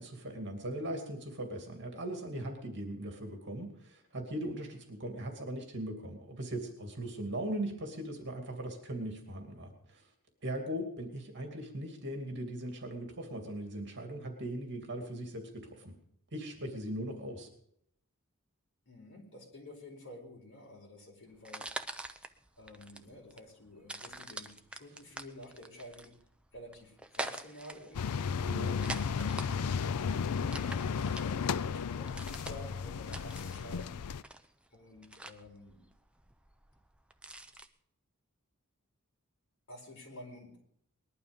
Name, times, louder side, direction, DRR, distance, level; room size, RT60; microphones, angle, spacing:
voice 1, 0.0-10.0 10.4-15.9 16.3-17.5 28.5-28.8, right 1 dB, 55° right, 4 dB, 2.6 m, -39 dB
voice 2, 18.9-21.7 22.6-26.1 26.5-28.1 30.3-34.0 34.7-35.8 39.7-40.6, left 1 dB, 60° left, 0 dB, 4.5 m, -51 dB
sound 1, 21.3-37.7, right 1 dB, 5° right, 0.8 m, -46 dB
sound 2, 27.9-34.2, left 6 dB, 90° left, 0.5 m, -34 dB
20.0 x 11.5 x 5.3 m, 0.71 s
head